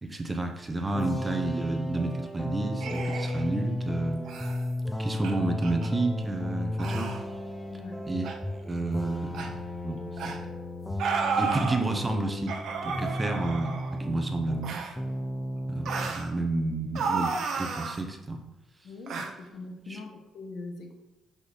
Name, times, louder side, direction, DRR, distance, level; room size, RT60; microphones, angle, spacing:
voice 1, 0.0-4.2 5.0-7.1 8.1-10.4 11.4-12.6 12.9-14.8 15.7-18.4 19.9-20.0, right 2 dB, 20° right, 4 dB, 0.8 m, -31 dB
sound 1, 0.9-14.7 15.0-16.1, left 1 dB, 10° left, 0.6 m, -34 dB
sound 2, 2.8-3.5 4.3-4.6 5.2-5.3 5.6-5.9 6.8-7.2 8.2-8.4 9.3-9.5 10.2-10.4 11.0-11.8 12.5-14.0 14.6-14.9 15.9-16.3 16.9-18.0 19.1-19.3, right 5 dB, 75° right, 0.7 m, -32 dB
voice 2, 18.8-20.9, left 3 dB, 70° left, 3 dB, 1.1 m, -42 dB
5.2 x 4.1 x 5.0 m, 1.0 s
cardioid pair, 90°, 0 cm